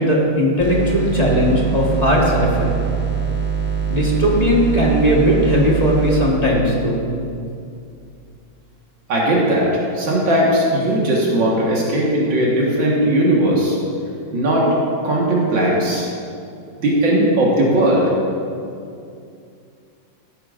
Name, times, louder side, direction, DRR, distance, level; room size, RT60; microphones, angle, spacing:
voice 1, 0.0-2.7 3.9-7.0, equal, 25° left, -4 dB, 1.3 m, -17 dB
sound 1, 0.6-6.3, right 7 dB, 10° right, 0.7 m, -23 dB
voice 2, 9.1-13.8 14.3-14.7 15.0-16.1 16.8-18.0, right 1 dB, 90° right, -4 dB, 2.3 m, -18 dB
15.5 x 8.7 x 2.5 m, 2.5 s
omnidirectional pair, 2.0 m